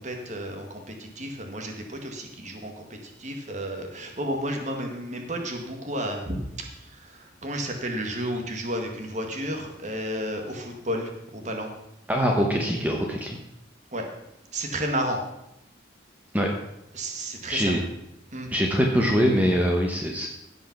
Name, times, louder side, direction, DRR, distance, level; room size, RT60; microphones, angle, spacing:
voice 1, 0.0-11.7 13.9-14.1 14.5-15.2 16.9-17.8 18.3-18.5, equal, 40° right, 3 dB, 1.7 m, -32 dB
voice 2, 12.1-13.4 16.3-16.5 17.5-17.8 18.5-20.3, equal, 10° right, 0 dB, 1.0 m, -23 dB
16.0 x 5.6 x 5.9 m, 0.85 s
head